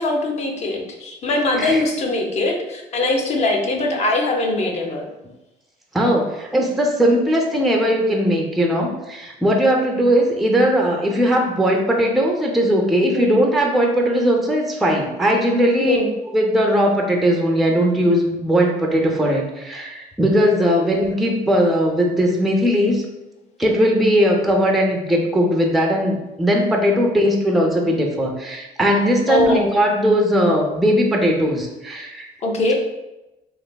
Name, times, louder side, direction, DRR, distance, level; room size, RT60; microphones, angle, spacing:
voice 1, 0.0-5.1 13.1-13.4 15.9-16.1 29.3-29.7 32.4-32.7, left 2 dB, 40° left, 1 dB, 0.6 m, -21 dB
voice 2, 5.9-16.0 16.3-23.0 23.6-32.3, equal, ahead, 0 dB, 0.4 m, -19 dB
3.2 x 2.5 x 2.2 m, 0.99 s
cardioid pair, 110°, 17 cm